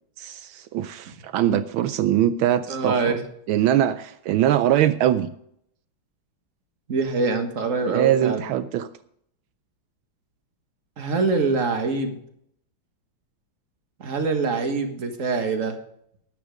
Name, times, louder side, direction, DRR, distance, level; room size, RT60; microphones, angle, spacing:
voice 1, 0.2-3.2 3.5-5.3 7.8-8.9, right 11 dB, 80° right, 12 dB, 1.4 m, -22 dB
voice 2, 2.7-3.2 6.9-8.4 11.0-12.2 14.0-15.8, right 4 dB, 40° right, 6 dB, 1.8 m, -24 dB
12.5 x 9.5 x 5.2 m, 0.70 s
omnidirectional pair, 2.2 m